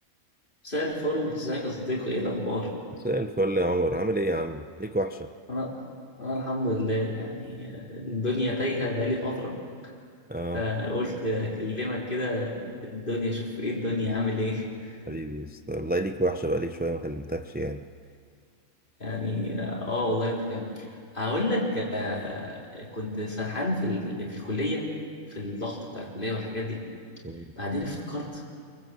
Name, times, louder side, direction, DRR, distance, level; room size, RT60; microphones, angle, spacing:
voice 1, 0.6-2.7 5.5-5.7 6.2-9.6 10.5-14.9 19.0-24.9 25.3-26.8 27.6-28.4, left 1 dB, 35° left, -3 dB, 4.4 m, -30 dB
voice 2, 3.0-5.3 10.3-10.6 15.1-17.8 27.2-27.4, right 1 dB, 10° right, 7 dB, 0.4 m, -28 dB
25.0 x 24.0 x 7.9 m, 2.2 s
omnidirectional pair, 1.5 m